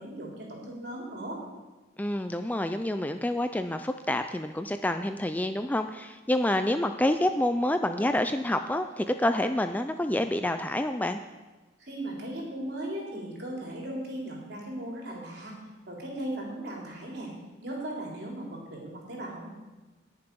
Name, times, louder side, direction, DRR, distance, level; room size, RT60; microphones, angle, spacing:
voice 1, 0.0-1.4 11.8-15.5 15.9-17.3 17.6-19.5, right 1 dB, 55° right, -2 dB, 3.5 m, -37 dB
voice 2, 2.0-11.2, left 1 dB, 10° left, 8 dB, 0.4 m, -28 dB
19.5 x 6.9 x 5.3 m, 1.2 s
head